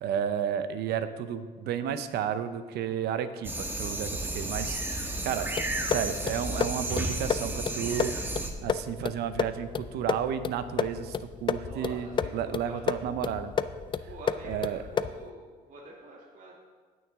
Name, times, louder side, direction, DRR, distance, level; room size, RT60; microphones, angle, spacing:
voice 1, 0.0-5.5 5.8-8.2 8.6-11.1 11.4-13.5 14.4-14.8, right 9 dB, 75° right, 11 dB, 0.7 m, -32 dB
sound 1, 3.4-8.5, right 1 dB, 10° right, 1.2 m, -32 dB
sound 2, 5.6-15.3, left 7 dB, 30° left, 0.4 m, -32 dB
voice 2, 11.6-13.0 14.1-16.5, right 2 dB, 50° right, -3 dB, 1.6 m, -47 dB
17.0 x 6.4 x 3.6 m, 1.5 s
cardioid pair, 110°, 17 cm